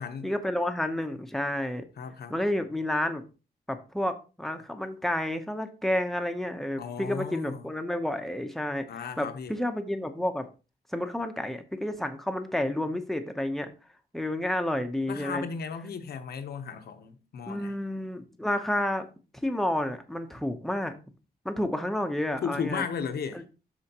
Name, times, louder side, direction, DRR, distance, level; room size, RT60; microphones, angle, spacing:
voice 1, 0.2-1.8 2.3-3.2 3.7-10.4 10.9-13.7 14.1-15.5 17.5-19.1 19.4-20.9 21.4-22.8, left 1 dB, ahead, 0.8 m, -30 dB
voice 2, 2.0-2.3 6.8-7.6 8.9-9.5 15.1-17.8 22.4-23.4, left 6 dB, 85° left, 1.0 m, -35 dB
12.5 x 4.4 x 2.9 m
wide cardioid pair, 160°, 16 cm